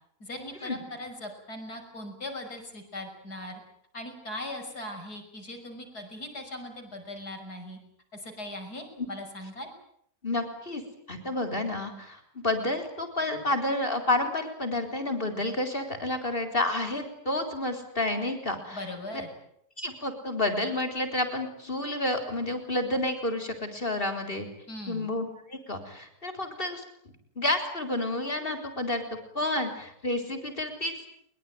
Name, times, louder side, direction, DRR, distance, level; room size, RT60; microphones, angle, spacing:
voice 1, 0.2-3.6 3.9-7.8 8.1-9.7 18.7-19.3 24.7-25.1, left 1 dB, 85° left, 4 dB, 6.4 m, -39 dB
voice 2, 10.2-10.8 11.1-18.8 19.1-19.2 19.8-24.5 24.9-26.8 27.4-29.0 29.3-30.9, left 1 dB, 35° left, 6 dB, 4.2 m, -30 dB
22.5 x 22.5 x 9.3 m, 0.72 s
omnidirectional pair, 1.6 m